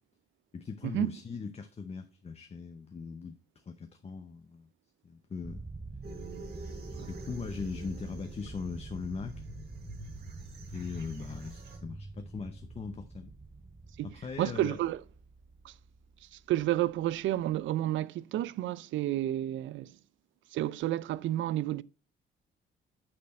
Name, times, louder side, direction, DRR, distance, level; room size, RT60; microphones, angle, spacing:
voice 1, 0.5-4.7 5.0-5.6 6.5-6.7 7.0-9.4 10.7-13.3 14.0-14.8, left 5 dB, 30° left, 0.7 m, -40 dB
sound 1, 5.4-17.6, right 3 dB, 15° right, 0.5 m, -46 dB
sound 2, 6.0-11.8, right 1 dB, 55° right, 3.7 m, -47 dB
voice 2, 14.0-15.0 15.6-15.7 16.3-19.9 20.5-21.8, right 13 dB, 75° right, 0.4 m, -31 dB
8.6 x 4.3 x 4.2 m
cardioid pair, 90°, 20 cm